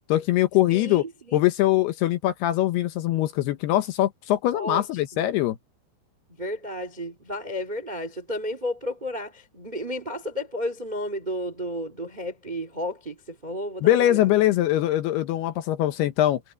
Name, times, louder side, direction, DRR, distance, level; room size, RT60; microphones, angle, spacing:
voice 1, 0.1-1.0 1.3-5.6 13.8-16.4, left 14 dB, 75° left, 2.7 m, -22 dB
voice 2, 0.7-1.4 4.5-4.8 5.1-5.2 6.4-14.3, left 1 dB, 25° right, 0.9 m, -32 dB
omnidirectional pair, 5.2 m